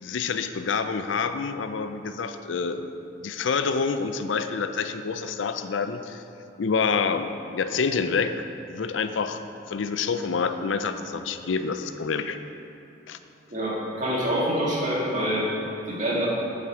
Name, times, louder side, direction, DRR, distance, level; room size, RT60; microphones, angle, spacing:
voice 1, 0.0-2.9 3.2-6.2 6.6-9.4 9.7-12.4 13.1-13.2, left 5 dB, 80° left, 9 dB, 0.5 m, -27 dB
voice 2, 13.5-15.5 15.9-16.3, equal, 40° right, -5 dB, 2.0 m, -26 dB
8.7 x 7.6 x 4.9 m, 2.8 s
head